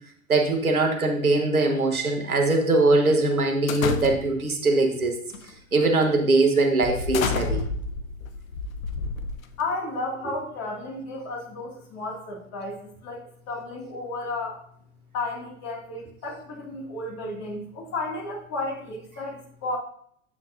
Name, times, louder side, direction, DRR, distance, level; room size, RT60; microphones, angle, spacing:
voice 1, 0.3-5.1 5.7-7.6, right 2 dB, 90° right, 3 dB, 1.3 m, -21 dB
sound 1, 3.7-4.5 5.3-5.6 6.0-6.2 6.8-9.7, left 5 dB, 70° left, 0.8 m, -30 dB
voice 2, 9.6-14.6 15.1-19.8, left 2 dB, 40° left, -1 dB, 2.3 m, -33 dB
8.3 x 7.3 x 2.6 m, 0.65 s
figure-of-eight pair, 90°, 42 cm